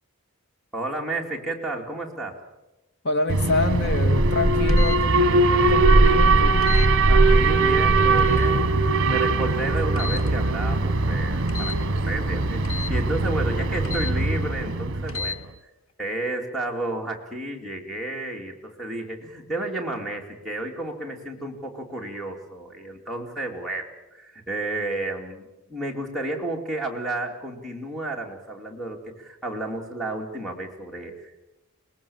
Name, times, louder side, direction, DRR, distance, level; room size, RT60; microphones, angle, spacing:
voice 1, 0.7-2.4 7.1-8.7 9.0-15.4 16.0-31.3, right 2 dB, ahead, 2 dB, 2.8 m, -32 dB
voice 2, 3.0-6.6, left 2 dB, 50° left, 8 dB, 1.8 m, -27 dB
Alarm, 3.3-15.3, right 2 dB, 55° right, 1.2 m, -20 dB
sound 1, 4.7-5.0 6.6-6.9 8.2-8.5 10.0-10.3 11.5-11.8 12.6-12.9 13.8-14.1 15.1-15.4, left 4 dB, 65° left, 1.1 m, -33 dB
24.5 x 20.0 x 7.2 m, 1.0 s
head